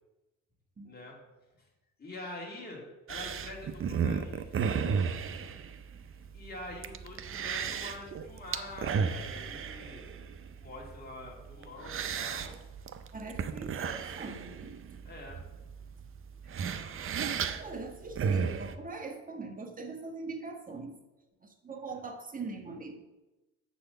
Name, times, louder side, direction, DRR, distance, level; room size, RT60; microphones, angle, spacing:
voice 1, 0.8-1.2 2.0-4.8 6.3-10.1 10.6-12.5 15.0-15.4, left 2 dB, 30° left, -2 dB, 2.5 m, -45 dB
sound 1, 3.1-18.8, right 6 dB, 45° right, 0.6 m, -35 dB
voice 2, 13.1-14.7 16.8-16.9 17.2-20.9 21.4-23.0, right 3 dB, 30° right, 3 dB, 1.3 m, -42 dB
7.9 x 4.2 x 6.5 m, 1.0 s
cardioid pair, 90°, 30 cm